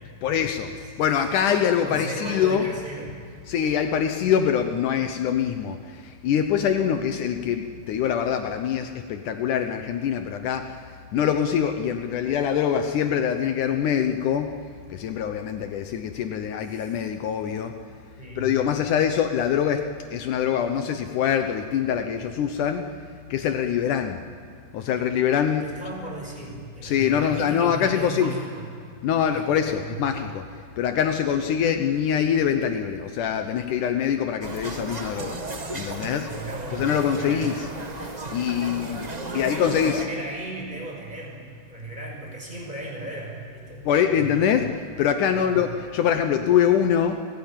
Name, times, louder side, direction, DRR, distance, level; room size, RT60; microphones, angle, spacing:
voice 1, 0.2-0.7 1.0-2.7 3.5-10.8 11.1-14.5 14.9-17.8 18.4-22.9 23.3-24.2 24.7-25.6 26.8-28.3 29.0-30.5 30.8-35.4 35.7-36.3 36.7-37.5 38.3-39.1 39.3-40.0 43.9-47.2, left 8 dB, 75° left, 7 dB, 2.4 m, -24 dB
voice 2, 1.8-3.1 16.7-16.9 18.2-18.5 25.6-28.7 29.2-29.5 29.8-30.2 36.2-37.5 38.8-43.8 44.1-44.4 45.3-45.6, right 1 dB, 15° right, -1 dB, 6.1 m, -36 dB
sound 1, 34.4-40.0, right 2 dB, 55° right, 0.4 m, -35 dB
29.0 x 17.5 x 9.1 m, 2.4 s
omnidirectional pair, 3.7 m